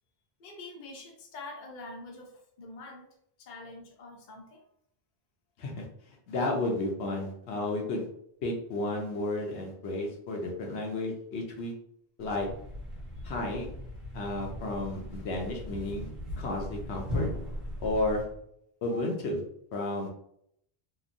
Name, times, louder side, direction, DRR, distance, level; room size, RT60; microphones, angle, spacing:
voice 1, 0.4-2.3 2.6-3.1 3.4-4.6 18.9-19.0, left 2 dB, 55° left, 1 dB, 0.6 m, -45 dB
voice 2, 6.3-8.1 8.4-11.7 12.2-12.5 13.2-13.7 14.1-16.1 16.4-17.3 17.8-18.2 18.8-19.4 19.7-20.1, left 2 dB, 80° left, 0 dB, 0.9 m, -32 dB
Thump thud, 12.2-18.4, left 1 dB, ahead, 0.8 m, -38 dB
2.9 x 2.1 x 2.5 m, 0.73 s
omnidirectional pair, 1.1 m